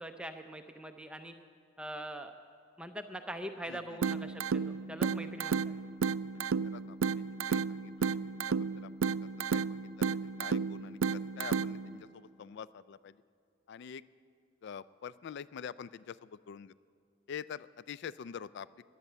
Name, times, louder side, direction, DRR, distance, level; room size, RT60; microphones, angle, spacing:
voice 1, 0.0-1.3 1.8-2.3 2.8-5.7, right 1 dB, 5° right, 6 dB, 0.5 m, -43 dB
voice 2, 3.7-4.0 6.3-6.4 6.7-9.1 9.5-13.2 13.7-14.0 14.6-16.7 17.3-18.7, left 7 dB, 55° left, 18 dB, 0.3 m, -46 dB
sound 1, 4.0-12.0, right 5 dB, 75° right, 0.4 m, -33 dB
16.5 x 11.0 x 6.7 m, 2.4 s
head